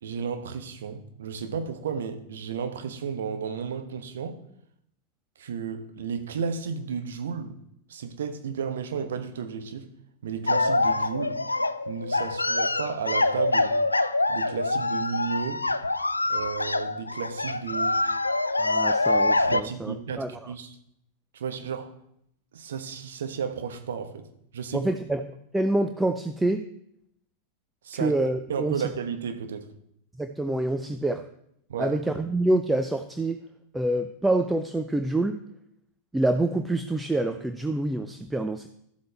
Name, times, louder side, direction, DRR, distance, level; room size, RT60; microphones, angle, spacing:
voice 1, 0.0-4.4 5.4-7.6 7.9-9.9 10.2-11.4 11.9-13.8 14.3-15.6 16.3-18.0 19.5-20.7 21.3-21.9 22.5-24.3 24.5-24.9 27.8-28.1 28.5-29.7 31.7-31.9, right 6 dB, 60° right, 1.0 m, -33 dB
sound 1, 10.5-19.6, left 2 dB, 80° left, 0.4 m, -25 dB
voice 2, 18.6-20.5 24.7-25.2 25.5-26.7 27.9-28.8 30.2-31.3 31.8-33.4 33.7-35.4 36.1-38.7, right 2 dB, 5° right, 0.5 m, -26 dB
12.0 x 7.7 x 3.4 m
figure-of-eight pair, 90°, 0 cm